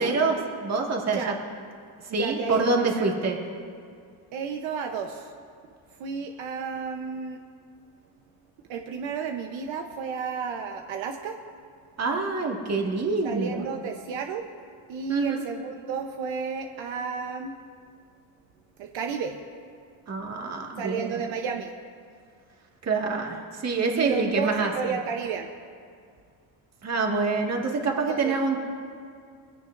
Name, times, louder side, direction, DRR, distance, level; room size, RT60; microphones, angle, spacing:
voice 1, 0.0-1.2 2.0-3.4 12.0-13.6 15.1-15.4 20.1-21.2 22.8-24.7 26.8-28.6, right 3 dB, 35° right, 0 dB, 1.9 m, -26 dB
voice 2, 2.2-3.1 4.3-5.3 6.0-7.4 8.7-11.4 13.2-14.5 14.9-17.6 18.8-19.4 20.8-21.7 24.0-25.5 28.1-28.3, right 6 dB, 70° right, 4 dB, 1.0 m, -32 dB
21.5 x 16.0 x 2.6 m, 2.3 s
cardioid pair, 150°, 47 cm